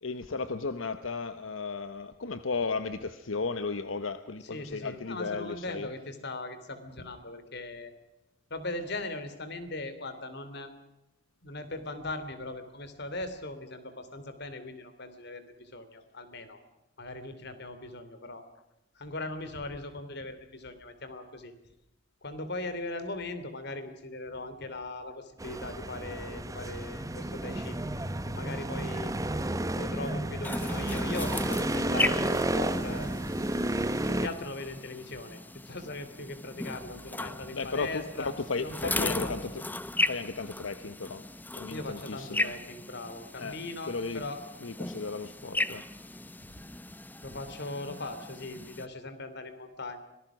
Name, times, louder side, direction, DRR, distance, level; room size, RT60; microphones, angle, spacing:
voice 1, 0.0-5.9 37.5-39.5 40.0-41.2 41.5-42.5 43.4-44.2 44.6-45.8, left 4 dB, 80° left, 12 dB, 1.0 m, -35 dB
voice 2, 4.5-7.9 8.5-10.7 11.4-16.6 17.0-18.5 19.0-21.5 22.2-27.8 28.2-29.1 29.8-33.1 34.1-35.4 35.7-38.3 38.6-39.3 41.7-44.4 46.5-46.6 47.2-50.0, left 2 dB, 55° left, 10 dB, 3.0 m, -39 dB
sound 1, 25.4-34.3, right 1 dB, 15° right, 1.1 m, -31 dB
sound 2, 30.4-48.9, left 2 dB, 10° left, 0.7 m, -36 dB
26.0 x 19.0 x 6.1 m, 0.93 s
head